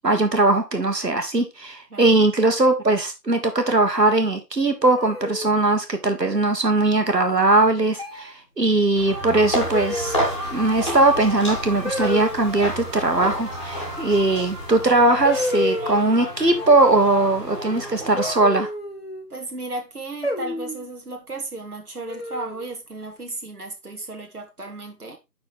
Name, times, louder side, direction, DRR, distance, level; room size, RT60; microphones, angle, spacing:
voice 1, 0.0-10.2 10.5-18.7, right 2 dB, 80° right, 1.7 m, -20 dB
sound 1, 5.0-5.8 7.1-7.5 8.0-8.3 9.7-10.4 11.8-12.4 14.4-14.5 15.2-16.2 18.2-19.3 20.2-20.9 22.1-22.7, left 2 dB, 40° left, 1.1 m, -30 dB
sound 2, 8.9-18.3, equal, 25° right, 3.4 m, -34 dB
sound 3, 9.4-15.0, equal, 20° left, 2.1 m, -31 dB
voice 2, 19.3-25.2, right 2 dB, 65° right, 1.7 m, -34 dB
10.5 x 4.4 x 3.7 m
figure-of-eight pair, 170°, 48 cm